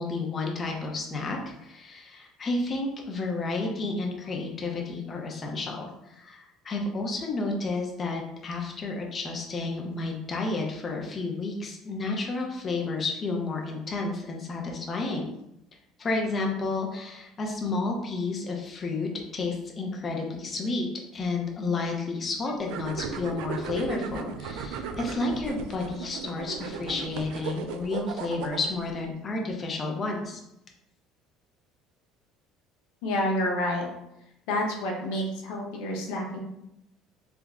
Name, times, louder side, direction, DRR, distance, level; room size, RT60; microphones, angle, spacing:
voice 1, 0.0-15.3 16.0-20.9 21.1-30.4, left 3 dB, 30° left, 0 dB, 0.6 m, -31 dB
sound 1, 22.6-28.9, right 6 dB, 80° right, 0.3 m, -36 dB
voice 2, 33.0-33.9 34.5-36.4, left 1 dB, 85° left, 0 dB, 0.8 m, -28 dB
3.4 x 2.0 x 3.5 m, 0.83 s
cardioid pair, 130°, 0 cm